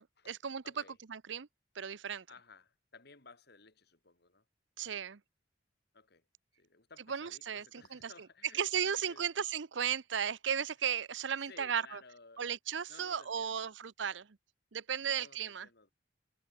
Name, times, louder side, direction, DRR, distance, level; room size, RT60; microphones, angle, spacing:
voice 1, 0.0-0.6 1.1-1.5 1.8-2.2 4.8-5.2 7.1-7.6 7.9-8.1 8.6-12.0 12.4-14.3 14.7-15.7, right 8 dB, 90° right, 0.7 m, -35 dB
voice 2, 0.6-1.0 2.3-4.4 5.9-6.3 6.5-9.3 11.5-12.5 12.9-13.7 15.0-15.9, left 4 dB, 65° left, 3.5 m, -58 dB
head